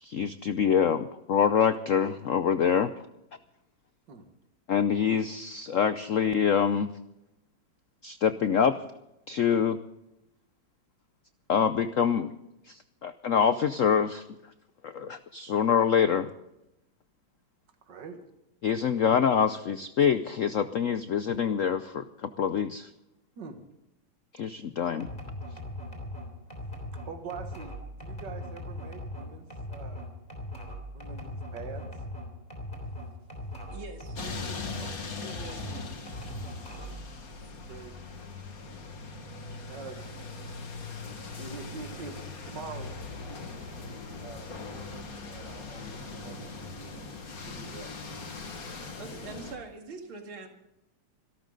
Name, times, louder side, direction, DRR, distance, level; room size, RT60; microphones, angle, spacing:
voice 1, 0.0-2.9 4.7-6.9 8.0-8.8 9.3-9.8 11.5-12.3 12.7-14.2 14.8-16.3 18.6-22.9 24.3-25.1, left 7 dB, 90° left, 11 dB, 0.7 m, -25 dB
voice 2, 17.8-18.2 23.4-23.6 27.1-30.1 30.9-31.9 37.7-37.9 39.7-40.3 41.0-43.6 44.2-47.9, right 4 dB, 60° right, 5 dB, 2.3 m, -45 dB
sound 1, 25.0-35.0 35.3-37.1, left 1 dB, 20° left, 3.4 m, -39 dB
voice 3, 33.7-34.7 35.2-36.0 49.0-50.5, right 3 dB, 85° right, 4 dB, 3.0 m, -43 dB
sound 2, 34.1-49.6, left 3 dB, 45° left, 2.2 m, -40 dB
25.5 x 12.5 x 3.9 m, 0.88 s
omnidirectional pair, 2.2 m